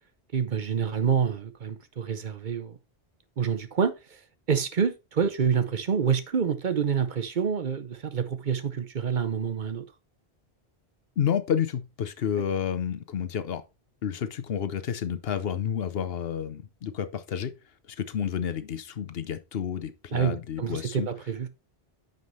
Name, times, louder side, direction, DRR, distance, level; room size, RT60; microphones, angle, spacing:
voice 1, 0.3-2.8 3.4-4.2 4.5-9.8 20.1-21.5, right 7 dB, 55° right, 0.8 m, -27 dB
voice 2, 11.2-13.6 14.0-17.5 17.9-21.1, left 8 dB, 70° left, 1.0 m, -30 dB
9.5 x 5.4 x 3.2 m
omnidirectional pair, 1.0 m